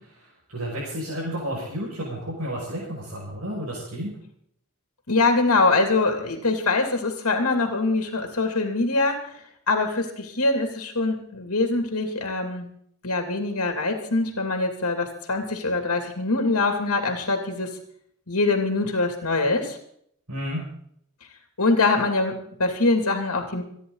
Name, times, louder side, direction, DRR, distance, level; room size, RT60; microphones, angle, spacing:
voice 1, 0.0-4.1 20.3-20.6, equal, 85° right, -6 dB, 6.2 m, -32 dB
voice 2, 5.1-12.7 13.0-17.8 18.3-19.8 21.6-23.6, left 3 dB, 80° left, 4 dB, 2.7 m, -23 dB
28.5 x 10.5 x 4.0 m, 0.68 s
head